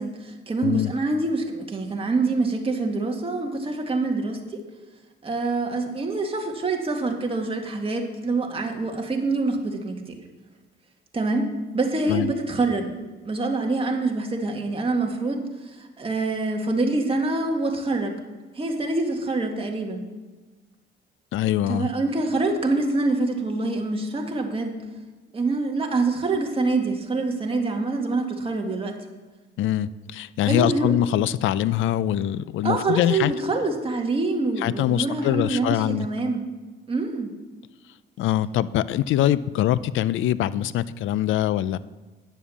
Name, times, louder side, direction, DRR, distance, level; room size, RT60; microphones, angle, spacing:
voice 1, 0.0-4.6 5.2-10.2 11.1-12.9 13.3-18.2 18.6-20.1 21.7-24.8 25.3-29.0 30.5-30.9 32.6-36.4 36.9-37.3, right 3 dB, 30° right, 2 dB, 2.0 m, -25 dB
voice 2, 21.3-21.9 29.6-33.3 34.6-36.1 38.2-41.8, left 12 dB, 80° left, 17 dB, 0.5 m, -23 dB
10.0 x 7.4 x 7.2 m, 1.3 s
cardioid pair, 90°, 20 cm